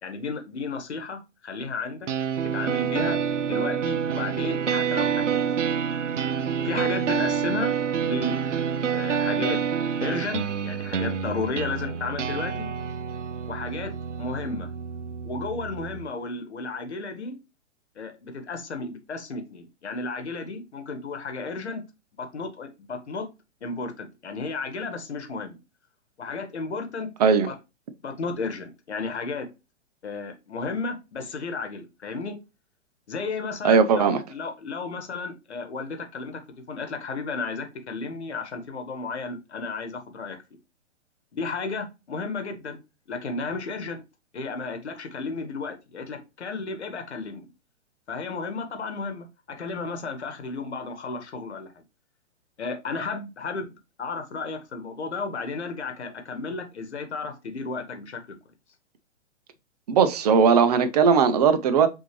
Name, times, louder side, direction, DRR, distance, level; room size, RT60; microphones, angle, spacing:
voice 1, 0.0-2.1 2.4-3.2 3.5-5.5 6.6-8.4 8.9-9.6 10.0-12.7 13.5-14.7 15.2-17.4 18.0-21.8 22.2-23.3 23.6-25.6 26.2-27.1 27.5-27.6 28.0-29.5 30.0-32.4 33.1-36.4 36.7-40.4 41.3-42.8 43.1-44.0 44.3-47.4 48.1-51.7 52.6-53.7 54.0-58.2, left 4 dB, 65° left, 1.2 m, -33 dB
sound 1, 2.1-16.1, right 7 dB, 80° right, 0.5 m, -28 dB
voice 2, 33.6-34.2 59.9-61.9, right 6 dB, 35° right, 0.5 m, -18 dB
5.8 x 2.7 x 3.0 m
figure-of-eight pair, 120°, 36 cm